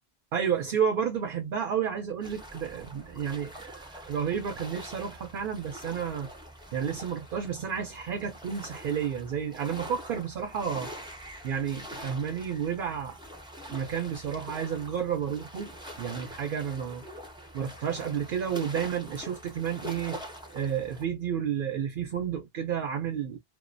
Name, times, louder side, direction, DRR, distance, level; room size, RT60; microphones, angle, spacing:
voice 1, 0.3-6.3 6.7-10.9 11.4-13.2 13.7-17.0 17.5-20.2 20.5-23.4, right 8 dB, 60° right, 0.7 m, -31 dB
sound 1, 2.2-21.0, equal, 5° right, 0.4 m, -44 dB
2.3 x 2.2 x 2.5 m
omnidirectional pair, 1.1 m